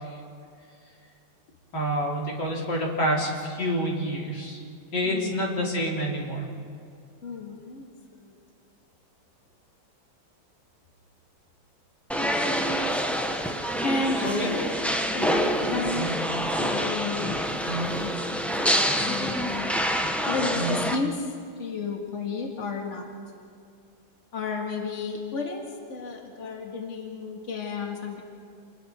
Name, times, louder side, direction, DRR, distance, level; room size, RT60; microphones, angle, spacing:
voice 1, 1.7-4.6 4.9-6.5 14.2-14.5 15.9-16.1 17.7-17.9 20.5-20.8, equal, 60° left, -3 dB, 3.9 m, -28 dB
voice 2, 5.0-5.5 7.2-8.3 13.8-14.8 15.1-16.1 16.6-17.4 17.9-19.8 20.2-21.3 21.6-23.1 24.3-28.2, left 4 dB, 40° left, 0 dB, 2.3 m, -33 dB
sound 1, 12.1-20.9, equal, ahead, 0.5 m, -27 dB
28.0 x 21.5 x 4.5 m, 2.4 s
omnidirectional pair, 2.1 m